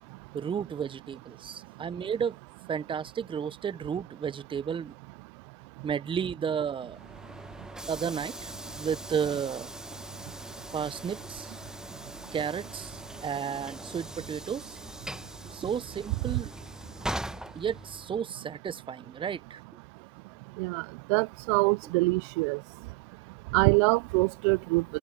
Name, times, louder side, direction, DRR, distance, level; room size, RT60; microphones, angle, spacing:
voice 1, 0.3-2.4 2.7-4.9 5.8-7.0 7.9-9.7 10.7-11.5 12.3-14.8 15.4-16.5 17.5-19.6, right 7 dB, 35° right, 0.8 m, -33 dB
Train / Sliding door, 6.8-18.3, right 1 dB, 5° right, 1.2 m, -41 dB
voice 2, 21.1-22.6 23.5-24.8, right 27 dB, 80° right, 0.5 m, -24 dB
hypercardioid pair, 65°, 14 cm